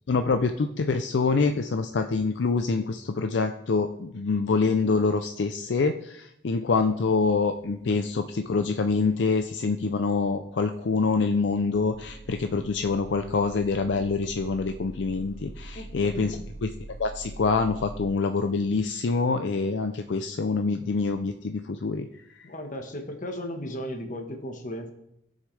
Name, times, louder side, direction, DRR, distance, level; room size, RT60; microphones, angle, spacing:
voice 1, 0.1-16.4 16.6-16.7 17.0-22.1 22.3-22.4, left 4 dB, 70° left, 7 dB, 0.5 m, -26 dB
sound 1, 6.9-7.5 7.8-8.1 8.5-8.6 8.9-9.0 9.6-18.1, right 2 dB, 60° right, 3.7 m, -44 dB
voice 2, 15.7-16.3 22.4-24.9, equal, 45° left, 4 dB, 1.3 m, -36 dB
16.0 x 6.4 x 3.3 m, 0.79 s
head